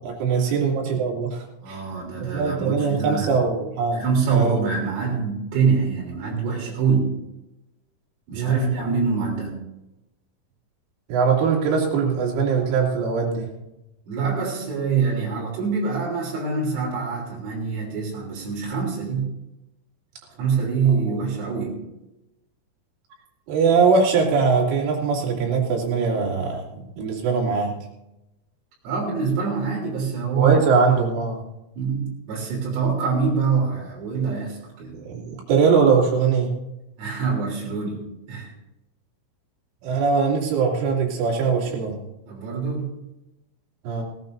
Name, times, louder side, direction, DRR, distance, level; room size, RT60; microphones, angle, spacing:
voice 1, 0.0-1.8 2.2-4.0 4.3-4.6 8.3-8.7 11.1-13.5 23.5-27.7 30.4-31.4 34.9-36.5 39.8-42.0 43.8-44.0, right 5 dB, 70° right, -2 dB, 5.2 m, -21 dB
voice 2, 1.6-3.4 3.9-7.2 8.3-9.6 14.1-19.3 20.4-21.8 28.8-30.6 31.8-35.0 37.0-38.5 42.2-42.9, right 5 dB, 90° right, -4 dB, 6.2 m, -25 dB
17.5 x 17.0 x 2.7 m, 0.94 s
omnidirectional pair, 5.9 m